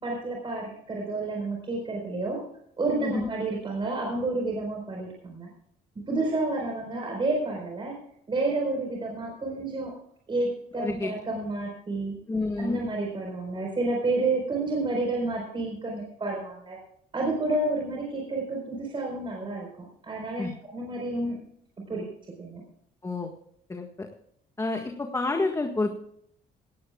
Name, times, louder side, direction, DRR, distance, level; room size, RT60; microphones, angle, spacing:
voice 1, 0.0-2.4 2.8-5.5 6.1-7.9 8.3-9.9 10.3-12.1 12.6-16.8 17.1-19.7 20.0-21.4 21.9-22.0 22.4-22.6, right 2 dB, 30° right, 0 dB, 4.4 m, -30 dB
voice 2, 10.7-11.1 12.3-12.8 20.4-20.5 23.0-23.3 23.7-23.9 24.6-25.9, left 3 dB, 15° left, 3 dB, 1.6 m, -29 dB
18.0 x 15.5 x 2.4 m, 0.70 s
cardioid pair, 110°, 17 cm